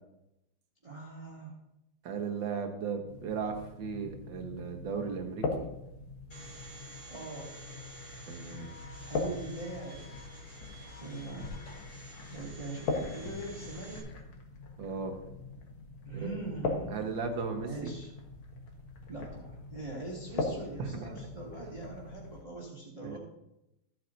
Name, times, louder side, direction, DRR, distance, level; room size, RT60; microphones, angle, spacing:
voice 1, 0.8-1.5 7.1-7.5 9.0-10.1 10.9-11.5 12.3-14.1 16.1-17.1 17.6-18.1 19.1-23.2, right 2 dB, 15° right, -5 dB, 2.1 m, -42 dB
voice 2, 2.0-5.7 8.3-8.7 14.8-15.2 16.1-16.4 16.9-17.9 20.8-21.1 23.0-23.2, right 5 dB, 65° right, 4 dB, 1.9 m, -36 dB
sound 1, 3.1-22.4, left 3 dB, 75° left, 2.3 m, -41 dB
Domestic sounds home sounds, 6.3-14.0, right 1 dB, 55° left, 3.1 m, -51 dB
14.5 x 9.0 x 2.7 m, 0.86 s
omnidirectional pair, 2.3 m